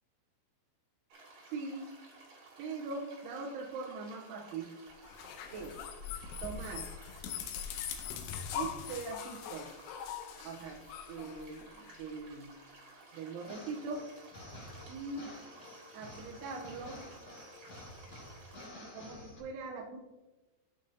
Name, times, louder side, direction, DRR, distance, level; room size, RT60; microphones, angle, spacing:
sound 1, 1.1-18.7, right 3 dB, 45° right, 2.5 m, -56 dB
voice 1, 1.4-1.9 2.6-4.7 5.5-5.8 6.4-6.9 8.5-9.7 10.4-12.5 13.1-14.0 14.9-15.2 15.9-17.0 18.9-20.0, right 4 dB, 75° right, -1 dB, 2.6 m, -41 dB
sound 2, 5.0-12.0, left 8 dB, 80° left, 2.6 m, -42 dB
sound 3, 13.4-19.4, left 1 dB, 35° left, 2.8 m, -50 dB
14.0 x 5.3 x 2.7 m, 1.1 s
omnidirectional pair, 5.1 m